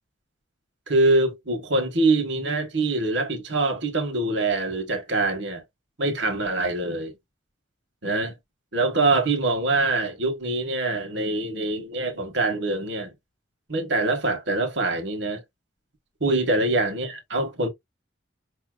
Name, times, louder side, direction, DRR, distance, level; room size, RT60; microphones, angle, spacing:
voice 1, 0.9-5.6 6.0-7.1 8.0-8.3 8.7-13.1 13.7-15.4 16.2-17.7, right 2 dB, 70° right, 1.5 m, -24 dB
5.5 x 2.8 x 2.4 m
head